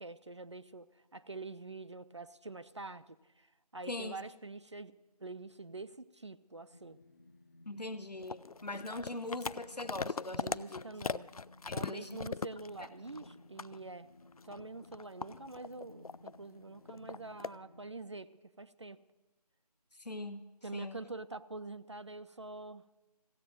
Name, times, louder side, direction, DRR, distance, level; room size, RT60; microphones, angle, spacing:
voice 1, 0.0-3.5 3.7-4.9 5.2-7.0 10.3-11.3 11.7-14.1 14.4-18.3 18.6-19.0 20.6-22.8, right 3 dB, 45° right, 12 dB, 0.5 m, -46 dB
voice 2, 3.9-4.2 7.6-10.8 11.7-12.2 12.8-12.9 19.9-20.4 20.7-21.0, left 2 dB, 80° left, 9 dB, 1.3 m, -41 dB
sound 1, 6.7-17.9, left 2 dB, 25° left, 0.8 m, -59 dB
sound 2, 8.2-13.3 13.6-13.8 14.3-16.4 16.9-17.6, left 4 dB, 65° left, 0.4 m, -40 dB
15.5 x 8.3 x 9.1 m, 1.0 s
figure-of-eight pair, 165°, 20 cm